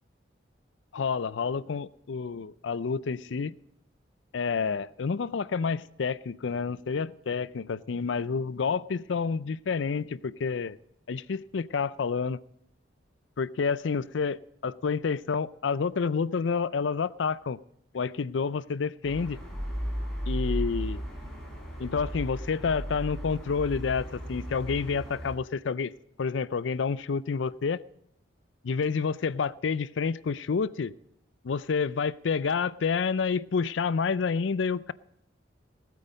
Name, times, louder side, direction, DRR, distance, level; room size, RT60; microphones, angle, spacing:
voice 1, 0.9-3.5 4.3-10.8 11.1-12.4 13.4-17.6 17.9-19.4 20.3-21.0 21.8-25.9 26.2-27.8 28.6-30.9 31.4-34.9, left 5 dB, 80° left, 19 dB, 0.5 m, -29 dB
sound 1, 19.0-25.3, equal, ahead, 4.7 m, -35 dB
19.0 x 8.5 x 5.1 m, 0.76 s
head